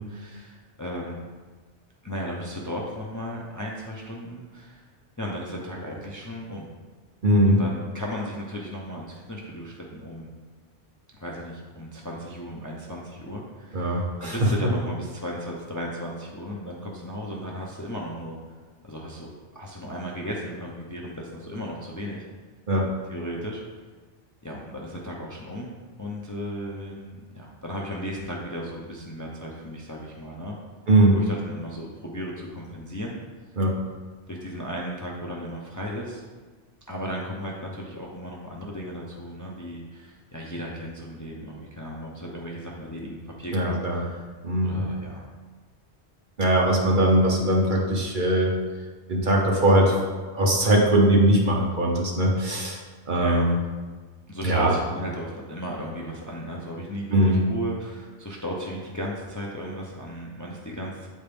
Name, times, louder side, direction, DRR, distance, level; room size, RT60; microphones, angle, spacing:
voice 1, 0.1-1.3 2.0-4.8 5.2-6.7 7.4-10.3 11.1-18.4 18.8-19.3 19.5-22.2 23.1-23.6 24.4-25.7 26.0-30.6 31.1-33.2 34.3-36.2 36.9-44.2 44.6-45.2 53.1-53.5 54.3-61.1, equal, 20° left, -2 dB, 0.6 m, -35 dB
voice 2, 7.2-7.6 13.7-14.7 22.7-22.9 30.9-31.2 33.6-33.7 43.5-44.0 44.4-44.8 46.4-48.5 49.1-50.0 50.3-52.8 53.1-53.5 54.4-54.7 57.1-57.4, right 1 dB, 45° right, -1 dB, 1.0 m, -20 dB
8.1 x 4.3 x 3.5 m, 1.4 s
omnidirectional pair, 1.2 m